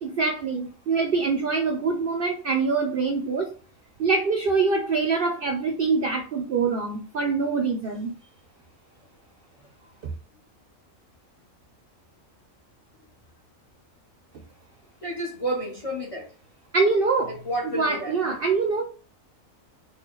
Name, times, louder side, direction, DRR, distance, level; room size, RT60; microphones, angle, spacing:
voice 1, 0.0-3.5 4.0-8.1 16.7-17.3 17.6-18.9, right 4 dB, 60° right, 0.6 m, -24 dB
voice 2, 15.0-16.3 17.3-18.3, right 1 dB, 35° left, 0.6 m, -31 dB
4.0 x 2.3 x 3.0 m
omnidirectional pair, 1.4 m